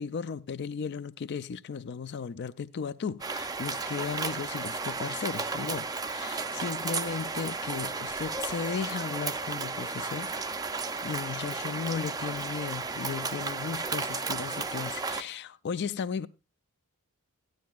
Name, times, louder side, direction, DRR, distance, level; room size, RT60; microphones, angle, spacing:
voice 1, 0.0-10.7 11.0-16.3, left 6 dB, 50° left, 0.4 m, -35 dB
sound 1, 3.2-15.2, right 4 dB, 15° right, 0.4 m, -34 dB
14.0 x 10.5 x 2.3 m
head